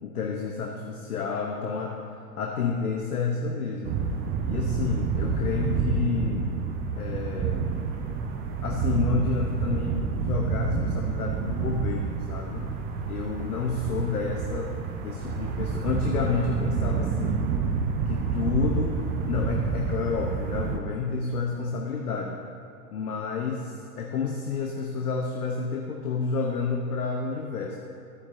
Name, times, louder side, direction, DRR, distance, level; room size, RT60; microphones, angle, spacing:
voice 1, 0.0-2.0 2.4-4.0 4.5-6.5 7.0-7.7 8.6-12.8 13.1-17.4 18.1-22.4 22.9-27.8, left 5 dB, 70° left, 1 dB, 1.0 m, -30 dB
sound 1, 3.8-20.8, right 5 dB, 20° right, 0.6 m, -28 dB
13.5 x 9.6 x 2.7 m, 2.7 s
figure-of-eight pair, 100°, 47 cm